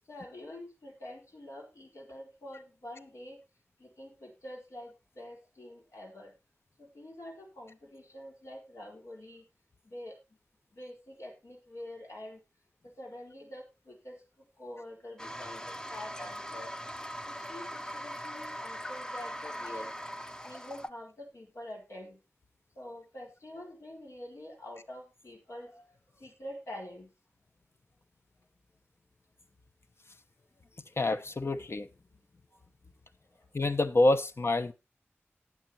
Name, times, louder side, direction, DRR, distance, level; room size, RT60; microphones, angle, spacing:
voice 1, 0.1-3.4 3.8-6.3 6.8-9.4 9.8-10.2 10.7-12.4 12.8-14.2 14.6-16.7 17.3-19.9 20.4-22.2 22.8-25.8 26.2-27.1, left 1 dB, 85° left, 4.5 m, -46 dB
Toilet flush, 15.2-20.9, equal, 15° left, 0.6 m, -40 dB
voice 2, 31.0-31.9 33.5-34.7, left 2 dB, 60° left, 1.0 m, -27 dB
18.5 x 7.2 x 2.9 m
wide cardioid pair, 65°, 5 cm